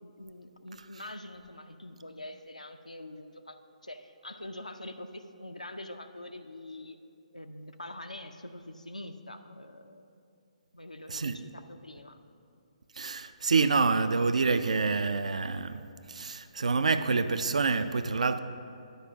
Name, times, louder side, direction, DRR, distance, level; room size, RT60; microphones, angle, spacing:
voice 1, 0.0-7.0 7.3-10.1 10.7-12.2, left 1 dB, 85° left, 0.4 m, -44 dB
voice 2, 11.1-11.5 12.9-18.4, right 4 dB, 65° right, 0.3 m, -27 dB
10.0 x 4.9 x 6.1 m
figure-of-eight pair, 135°, 4 cm